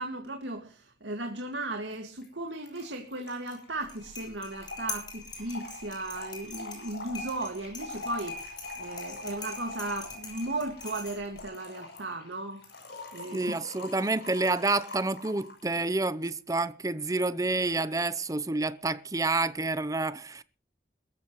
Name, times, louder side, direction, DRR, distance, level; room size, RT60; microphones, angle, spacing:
voice 1, 0.0-12.6 13.1-13.5, right 2 dB, 90° right, 1.9 m, -36 dB
Trickle dribble / Fill (with liquid), 1.9-2.0 2.2-2.3 2.5-15.6, left 2 dB, 60° left, 7.2 m, -44 dB
sound 1, 3.7-11.5, left 3 dB, 25° left, 6.2 m, -43 dB
voice 2, 13.3-20.4, right 2 dB, 20° right, 0.7 m, -29 dB
22.0 x 14.0 x 3.1 m
head